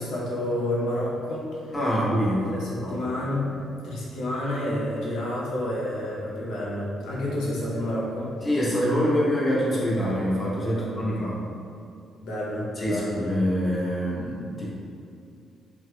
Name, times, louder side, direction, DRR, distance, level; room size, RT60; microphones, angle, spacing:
voice 1, 0.0-1.7 2.5-3.5 3.8-8.4 10.7-11.1 12.2-13.2, left 1 dB, 85° left, -5 dB, 0.7 m, -29 dB
voice 2, 1.7-2.5 2.8-3.0 3.5-3.6 8.4-11.4 12.8-14.7, equal, 25° left, -7 dB, 0.9 m, -25 dB
3.4 x 2.9 x 2.3 m, 2.5 s
cardioid pair, 90°, 0 cm